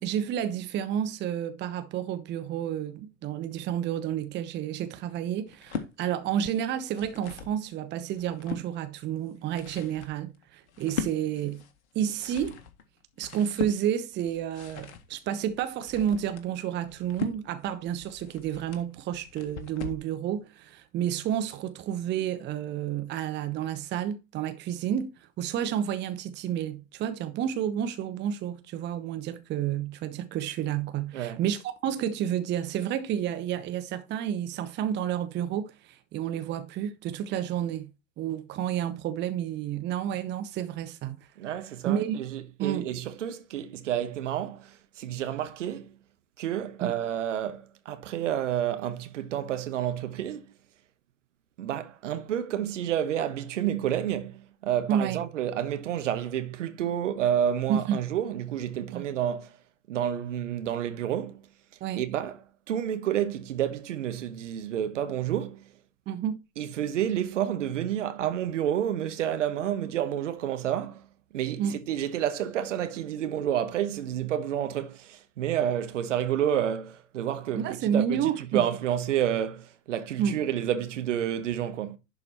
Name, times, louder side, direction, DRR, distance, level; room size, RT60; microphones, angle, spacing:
voice 1, 0.0-11.6 11.9-12.6 13.2-37.9 38.2-41.3 41.9-42.2 42.6-42.9 46.8-46.9 54.9-55.2 57.7-58.0 58.9-59.0 61.8-62.0 66.1-66.4 71.6-71.8 77.5-78.6 80.2-80.4, right 9 dB, 25° right, 0.9 m, -30 dB
sound 1, 5.5-5.9 6.7-7.6 8.0-8.7 9.3-20.1, left 7 dB, 55° left, 1.8 m, -40 dB
voice 2, 41.4-46.0 46.4-50.5 51.6-59.6 59.9-61.4 61.9-65.7 66.6-71.1 71.3-82.0, right 10 dB, 60° right, 1.2 m, -30 dB
11.0 x 4.8 x 4.3 m
figure-of-eight pair, 95°, 41 cm